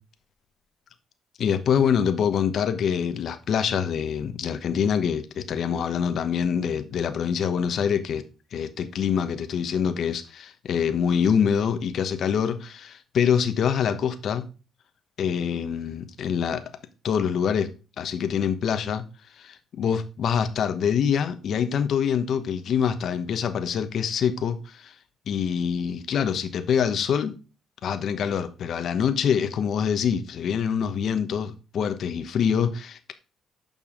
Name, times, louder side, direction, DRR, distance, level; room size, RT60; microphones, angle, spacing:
voice 1, 1.4-8.2 8.5-14.5 15.2-16.6 17.0-17.7 18.0-19.0 19.4-24.9 25.3-27.4 27.8-33.1, left 7 dB, 65° left, 1.1 m, -25 dB
7.3 x 5.6 x 5.5 m
cardioid pair, 90°, 0 cm